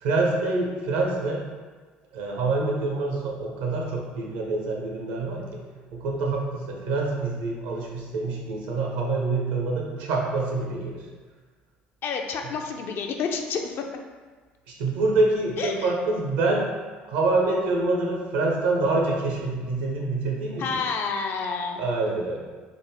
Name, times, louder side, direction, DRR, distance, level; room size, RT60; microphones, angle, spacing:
voice 1, 0.0-1.4 2.1-5.6 5.9-11.0 14.8-16.7 17.1-20.7 21.8-22.4, right 3 dB, 80° right, -1 dB, 0.7 m, -26 dB
voice 2, 12.0-13.8 15.6-15.9 20.6-21.8, left 5 dB, 55° left, 3 dB, 0.4 m, -29 dB
3.6 x 2.1 x 3.3 m, 1.4 s
hypercardioid pair, 65°, 5 cm